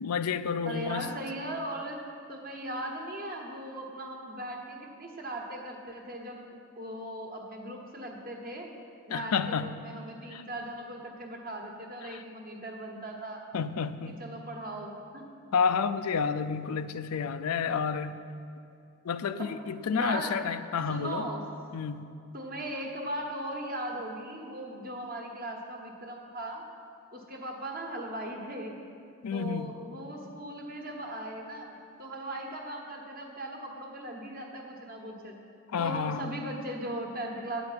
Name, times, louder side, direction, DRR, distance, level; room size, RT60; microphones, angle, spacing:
voice 1, 0.0-1.1 9.1-9.8 10.3-10.4 12.0-12.2 13.5-14.2 15.5-18.2 19.0-21.3 21.7-22.1 29.2-29.8 35.7-36.4, left 6 dB, 85° left, 12 dB, 0.4 m, -30 dB
voice 2, 0.6-2.0 2.3-8.7 9.1-13.4 14.1-15.3 16.7-16.8 19.4-19.5 19.9-20.4 20.9-21.6 22.3-26.6 27.1-28.7 29.3-35.4 35.8-37.6, right 1 dB, 40° right, 1 dB, 1.2 m, -38 dB
9.7 x 5.1 x 8.1 m, 2.5 s
head